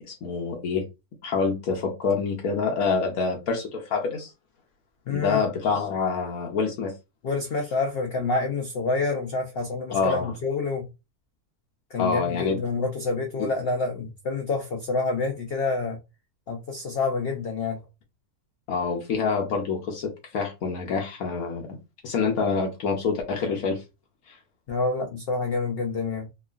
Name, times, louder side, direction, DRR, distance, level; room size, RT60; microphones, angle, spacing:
voice 1, 0.0-0.9 1.2-4.3 5.1-6.9 9.9-10.3 12.0-12.6 13.4-13.5 18.7-21.8 22.0-23.8 24.3-24.4, left 5 dB, 70° left, 1.0 m, -26 dB
voice 2, 5.1-5.4 7.2-10.9 11.9-16.0 16.5-17.8 24.7-26.3, left 3 dB, 85° left, 0.5 m, -27 dB
2.9 x 2.4 x 2.3 m
omnidirectional pair, 1.6 m